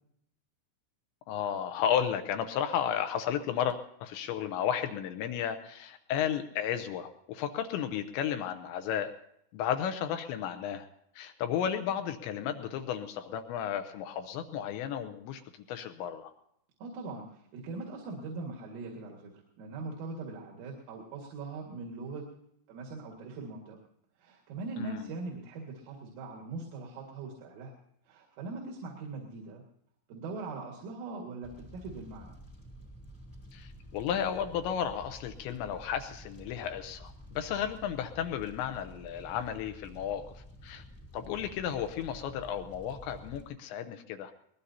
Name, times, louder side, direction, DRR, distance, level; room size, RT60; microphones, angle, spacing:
voice 1, 1.3-9.1 9.5-10.9 11.2-15.4 15.7-16.3 24.8-25.0 33.5-40.8 41.1-44.3, left 9 dB, 80° left, 7 dB, 2.9 m, -33 dB
voice 2, 16.8-19.3 19.6-22.3 22.7-23.8 24.2-27.7 28.0-29.6 30.1-32.4, right 3 dB, 85° right, -1 dB, 4.6 m, -41 dB
Fire, 31.4-43.4, equal, 10° left, 1.1 m, -50 dB
22.5 x 20.0 x 2.8 m, 0.73 s
omnidirectional pair, 5.7 m